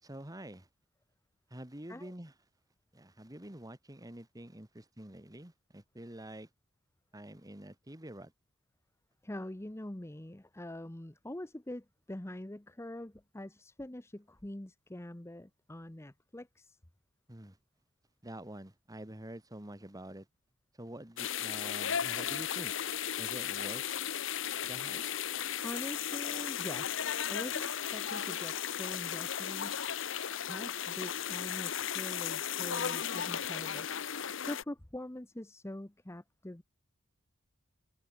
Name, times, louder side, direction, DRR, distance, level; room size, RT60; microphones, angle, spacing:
voice 1, 0.0-0.7 1.5-2.3 2.9-6.5 7.1-8.3 17.3-17.6 18.2-20.3 20.8-22.7 23.2-23.8 24.6-25.0, right 1 dB, 20° right, 2.0 m, -47 dB
voice 2, 9.2-16.8 25.6-29.8 30.3-36.6, left 1 dB, 15° left, 0.9 m, -44 dB
sound 1, 21.2-34.6, left 9 dB, 65° left, 1.0 m, -35 dB
head